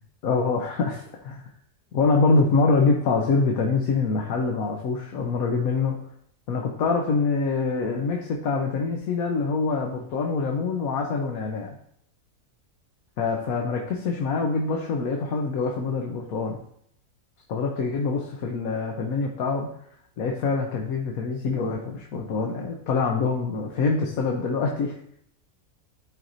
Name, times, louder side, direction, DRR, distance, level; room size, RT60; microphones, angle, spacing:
voice 1, 0.2-1.4 1.9-6.0 6.5-11.8 13.2-16.6 17.5-19.7 20.2-24.9, left 4 dB, 70° left, 1 dB, 1.2 m, -25 dB
12.0 x 4.6 x 2.6 m, 0.69 s
omnidirectional pair, 1.6 m